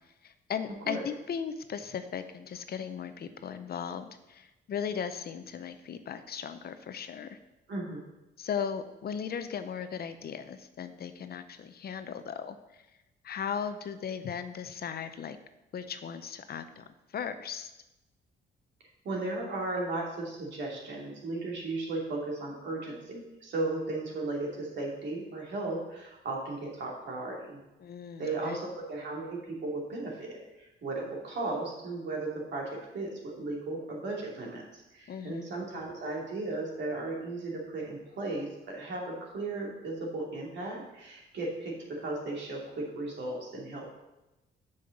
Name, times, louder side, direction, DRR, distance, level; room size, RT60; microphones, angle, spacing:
voice 1, 0.2-7.4 8.4-12.8 13.2-15.4 15.7-16.8 17.1-17.7 27.8-28.6 35.1-35.5, left 7 dB, 50° left, 10 dB, 0.7 m, -37 dB
voice 2, 7.7-8.0 19.0-27.6 28.2-43.8, right 2 dB, 65° right, -2 dB, 2.7 m, -36 dB
6.8 x 5.6 x 6.5 m, 0.98 s
cardioid pair, 90°, 20 cm